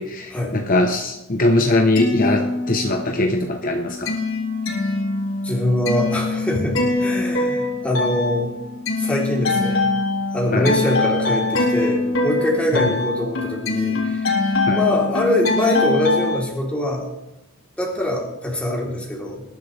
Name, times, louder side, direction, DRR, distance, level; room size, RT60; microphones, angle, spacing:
voice 1, 0.0-4.1 10.5-10.7 14.7-14.8, left 2 dB, 40° left, 4 dB, 1.0 m, -21 dB
sound 1, 1.9-3.2 3.5-16.3, left 3 dB, 75° left, 3.8 m, -23 dB
voice 2, 5.4-8.5 9.0-9.9 10.3-14.4 14.7-17.1 17.8-19.4, left 1 dB, 5° left, -3 dB, 3.6 m, -23 dB
20.5 x 11.0 x 3.4 m, 0.94 s
head